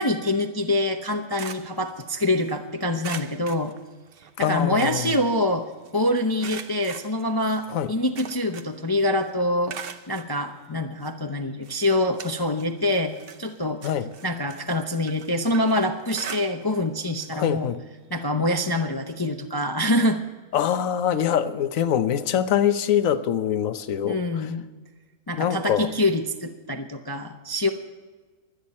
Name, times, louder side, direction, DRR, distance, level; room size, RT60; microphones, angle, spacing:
voice 1, 0.0-3.7 4.4-5.7 5.9-9.8 10.1-13.8 14.2-17.7 18.1-20.2 24.0-24.6 25.3-27.7, left 1 dB, 25° left, 5 dB, 0.6 m, -25 dB
sound 1, 1.0-2.6 3.0-4.3 4.6-5.9 6.4-8.9 9.2-10.3 11.0-11.1 11.6-12.8 13.1-16.9 17.2-17.4 17.7-17.8 19.1-19.2, right 7 dB, 50° right, 0.8 m, -41 dB
voice 2, 4.4-5.2 7.7-7.9 13.8-14.1 17.3-17.8 20.5-24.2 25.4-25.9, left 9 dB, 65° left, 11 dB, 1.2 m, -24 dB
24.5 x 9.1 x 4.3 m, 1.3 s
omnidirectional pair, 1.6 m